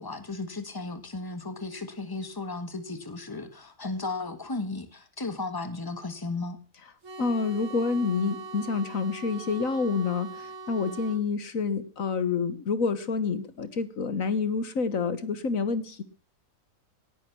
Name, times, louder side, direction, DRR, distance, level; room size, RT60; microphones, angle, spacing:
voice 1, 0.0-6.6, left 3 dB, 15° left, 10 dB, 1.7 m, -35 dB
sound 1, 7.0-11.2, right 3 dB, 65° right, 2.3 m, -42 dB
voice 2, 7.2-16.0, left 4 dB, 70° left, 13 dB, 1.7 m, -28 dB
18.5 x 11.0 x 6.0 m, 0.41 s
omnidirectional pair, 1.5 m